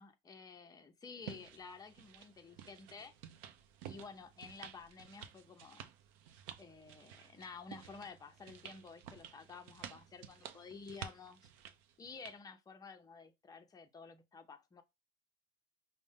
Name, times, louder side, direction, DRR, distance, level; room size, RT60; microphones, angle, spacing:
voice 1, 0.0-3.1 3.8-5.9 6.6-11.5 12.0-14.8, left 4 dB, 15° left, 0.5 m, -52 dB
sound 1, 1.2-12.4, right 9 dB, 70° right, 0.6 m, -53 dB
5.2 x 2.1 x 3.5 m
supercardioid pair, 130°, 29 cm